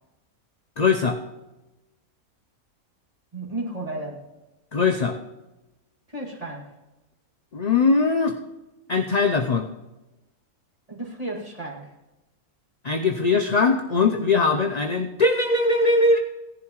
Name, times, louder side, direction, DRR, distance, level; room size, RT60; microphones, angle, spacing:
voice 1, 0.8-1.2 4.7-5.2 7.5-8.3 8.9-9.7 12.8-16.2, left 3 dB, 50° left, 4 dB, 0.4 m, -21 dB
voice 2, 3.3-4.2 6.1-6.7 10.9-11.9, right 2 dB, 25° right, -3 dB, 2.3 m, -33 dB
16.5 x 11.0 x 3.1 m, 1.0 s
omnidirectional pair, 1.5 m